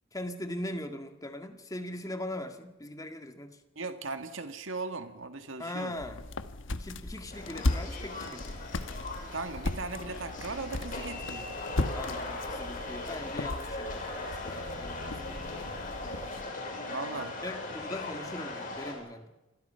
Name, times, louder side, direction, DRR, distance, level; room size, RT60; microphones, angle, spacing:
voice 1, 0.1-3.6 5.6-6.2 6.7-8.7 11.9-15.5 17.4-19.3, left 1 dB, 20° left, 7 dB, 1.9 m, -40 dB
voice 2, 3.8-5.9 9.3-11.6 16.9-17.4, right 3 dB, 80° right, 8 dB, 1.9 m, -38 dB
sound 1, 6.0-16.5, left 2 dB, 75° left, 1.1 m, -37 dB
sound 2, 7.3-18.9, left 2 dB, 45° left, 6.5 m, -39 dB
28.5 x 22.0 x 5.7 m, 1.0 s
head